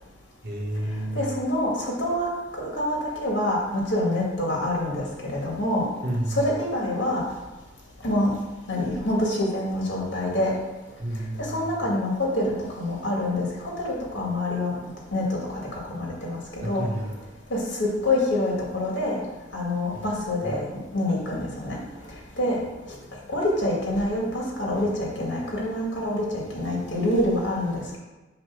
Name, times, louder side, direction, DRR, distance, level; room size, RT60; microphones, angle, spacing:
voice 1, 0.4-1.3 6.0-6.5 11.0-11.7 16.6-17.1 20.4-20.5, right 1 dB, 55° right, 0 dB, 1.3 m, -30 dB
voice 2, 1.1-2.3 2.6-5.9 6.3-7.2 8.0-8.3 8.7-10.5 11.5-13.5 13.9-14.7 15.1-15.2 15.9-16.4 16.6-16.8 17.5-19.2 19.5-20.6 20.9-21.8 22.4-22.6 23.3-28.0, left 1 dB, 80° left, -3 dB, 2.2 m, -26 dB
7.8 x 3.2 x 6.2 m, 1.1 s
head